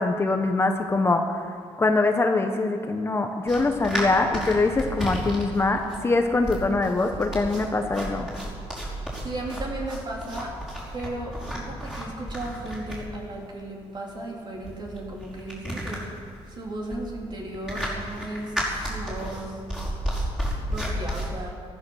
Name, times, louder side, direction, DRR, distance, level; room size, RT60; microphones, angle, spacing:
voice 1, 0.0-1.4 1.8-8.3, left 3 dB, 20° left, 5 dB, 1.0 m, -23 dB
sound 1, 3.5-21.3, equal, 5° right, 5.2 m, -33 dB
voice 2, 9.2-10.5 10.9-16.1 16.5-19.6 20.7-21.6, right 1 dB, 40° right, -1 dB, 3.4 m, -35 dB
15.0 x 13.5 x 6.4 m, 2.2 s
cardioid pair, 120°, 11 cm